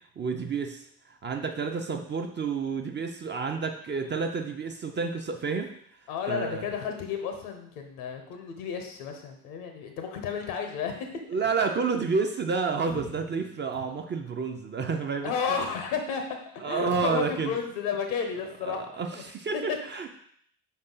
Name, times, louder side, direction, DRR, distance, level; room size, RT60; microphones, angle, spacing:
voice 1, 0.2-5.7 6.3-6.7 11.3-15.6 16.6-17.6 18.6-20.1, right 5 dB, 25° right, 4 dB, 0.5 m, -30 dB
voice 2, 6.1-10.9 11.6-11.8 15.2-16.2 16.6-19.2 19.5-19.6, left 6 dB, 70° left, 4 dB, 0.9 m, -32 dB
sound 1, 12.9-14.4 16.9-17.5, right 4 dB, 85° right, 0.9 m, -46 dB
5.1 x 2.7 x 3.8 m, 0.66 s
figure-of-eight pair, 50°, 45 cm